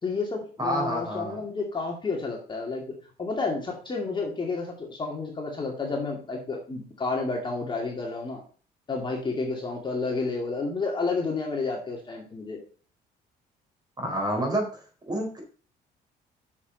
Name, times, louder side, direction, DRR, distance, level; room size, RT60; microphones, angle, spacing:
voice 1, 0.0-2.8 3.2-8.4 8.9-12.6, left 3 dB, 30° left, 0 dB, 2.1 m, -30 dB
voice 2, 0.6-1.4 14.0-14.8 15.1-15.4, equal, 25° right, 1 dB, 4.1 m, -28 dB
7.0 x 6.7 x 5.4 m, 0.41 s
cardioid pair, 110°, 17 cm